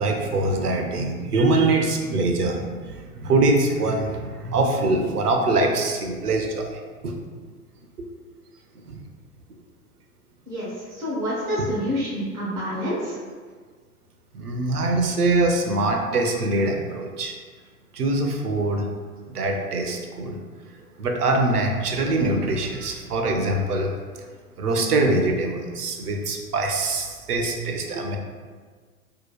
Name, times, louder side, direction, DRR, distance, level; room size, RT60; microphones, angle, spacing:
voice 1, 0.0-7.1 8.9-9.0 14.3-17.3 17.9-18.9 19.3-20.4 21.0-24.0 24.6-28.2, right 2 dB, 80° right, 3 dB, 0.6 m, -23 dB
voice 2, 10.9-13.2, equal, 10° right, -6 dB, 0.3 m, -27 dB
4.2 x 2.7 x 2.2 m, 1.6 s
figure-of-eight pair, 100°, 45 cm